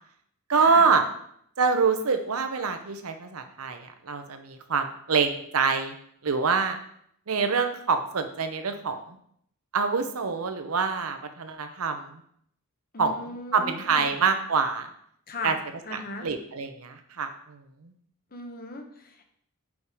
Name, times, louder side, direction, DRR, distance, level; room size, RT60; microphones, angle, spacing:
voice 1, 0.5-1.0 1.6-5.9 6.2-6.8 7.3-9.2 9.7-12.2 13.0-14.9 15.4-15.6 15.9-17.9, right 5 dB, 80° right, 7 dB, 0.8 m, -26 dB
voice 2, 12.9-14.1 15.3-15.6 15.8-16.3 18.3-19.3, left 2 dB, 45° left, 4 dB, 0.9 m, -37 dB
5.3 x 4.8 x 4.9 m, 0.68 s
head